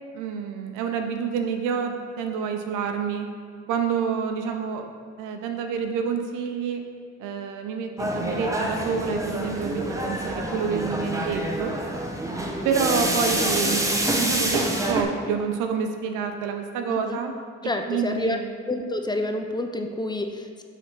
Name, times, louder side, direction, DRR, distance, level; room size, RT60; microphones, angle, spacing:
voice 1, 0.1-3.4 3.7-4.9 5.2-6.8 7.2-11.7 12.6-17.3 17.9-18.5, right 6 dB, 90° right, 5 dB, 0.6 m, -28 dB
sound 1, 8.0-15.0, right 1 dB, 10° right, 0.9 m, -27 dB
voice 2, 16.9-17.2 17.6-18.4 18.7-20.6, left 2 dB, 15° left, 4 dB, 0.6 m, -28 dB
5.8 x 3.6 x 5.5 m, 2.2 s
supercardioid pair, 65°, 30 cm